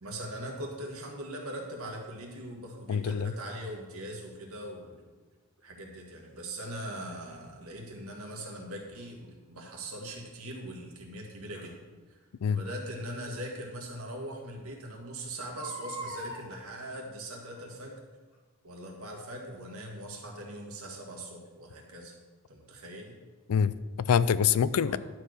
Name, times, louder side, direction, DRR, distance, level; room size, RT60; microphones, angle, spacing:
voice 1, 0.0-5.1 5.6-11.8 12.1-12.2 12.5-18.0 18.6-22.2 22.5-23.2 24.8-25.0, right 1 dB, 70° right, 0 dB, 1.9 m, -41 dB
voice 2, 2.9-3.3 12.4-12.6 23.5-25.0, left 7 dB, 80° left, 17 dB, 0.4 m, -25 dB
Crying sobbing, 8.9-9.1 11.5-11.7 13.3-13.4 13.9-14.0 14.3-14.4 15.4-16.5 17.4-17.8 18.3-18.4, right 1 dB, 65° left, 1.9 m, -41 dB
11.5 x 4.6 x 6.4 m, 1.3 s
head